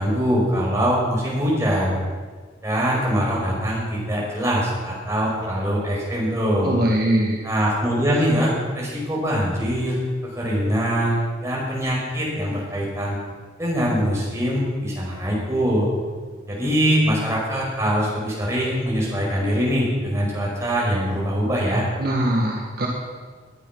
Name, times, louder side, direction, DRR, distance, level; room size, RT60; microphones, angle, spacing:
voice 1, 0.0-1.9 2.6-6.7 7.4-11.2 11.4-13.2 13.6-15.9 16.5-21.8, equal, 15° right, -4 dB, 5.2 m, -23 dB
voice 2, 6.6-7.4 22.0-22.9, right 1 dB, 50° right, -1 dB, 1.8 m, -21 dB
20.5 x 10.0 x 6.0 m, 1.5 s
head